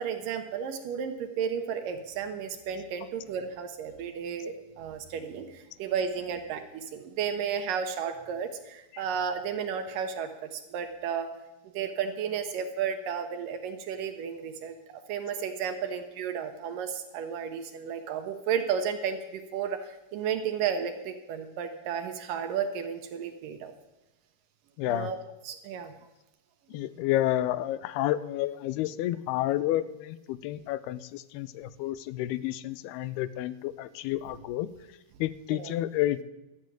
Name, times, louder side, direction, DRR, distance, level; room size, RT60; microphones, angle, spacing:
voice 1, 0.0-11.3 11.7-14.8 15.1-23.7 24.9-25.2 25.4-26.0 26.7-26.8 35.5-35.7, right 7 dB, 70° right, 7 dB, 2.2 m, -33 dB
voice 2, 24.8-25.1 26.7-34.7 35.2-36.2, left 14 dB, 90° left, 16 dB, 2.6 m, -30 dB
12.5 x 7.6 x 9.1 m, 1.0 s
omnidirectional pair, 4.5 m